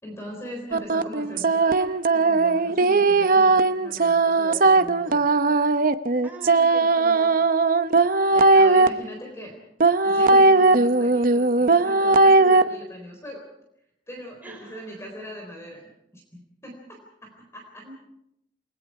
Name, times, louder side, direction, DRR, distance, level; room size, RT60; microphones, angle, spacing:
voice 1, 0.0-5.3 8.3-9.6 10.0-13.5 14.1-17.9, equal, 15° left, 1 dB, 4.0 m, -40 dB
sound 1, 0.7-8.9 9.8-12.6, right 3 dB, 50° right, 0.9 m, -18 dB
voice 2, 6.2-7.4 14.4-14.9 17.8-17.9, right 1 dB, 10° right, 1 dB, 5.5 m, -42 dB
29.0 x 21.0 x 4.8 m, 0.80 s
head